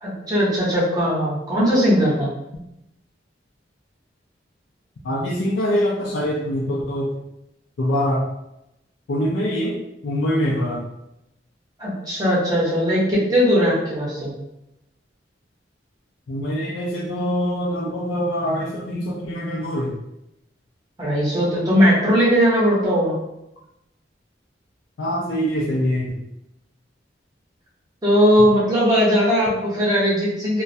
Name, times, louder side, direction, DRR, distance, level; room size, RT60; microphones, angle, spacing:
voice 1, 0.0-2.3 11.8-14.3 21.0-23.1 28.0-30.6, equal, 20° right, -7 dB, 0.8 m, -19 dB
voice 2, 5.0-7.1 7.8-8.3 9.1-9.8 10.0-10.8 16.3-20.0 25.0-26.2, equal, 85° left, -3 dB, 0.4 m, -24 dB
2.3 x 2.1 x 2.6 m, 0.85 s
head